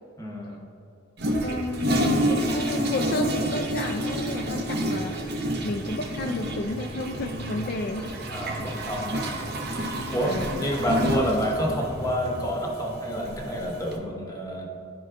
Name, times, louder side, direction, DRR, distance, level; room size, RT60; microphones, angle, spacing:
voice 1, 0.2-0.6 8.3-9.3 10.1-14.7, equal, 15° left, -1 dB, 0.9 m, -28 dB
Toilet flush, 1.2-14.0, right 1 dB, 55° right, 0.8 m, -29 dB
voice 2, 1.4-8.7 10.2-10.6 11.2-11.5, left 2 dB, 50° left, 3 dB, 0.4 m, -32 dB
12.0 x 4.5 x 2.5 m, 2.7 s
head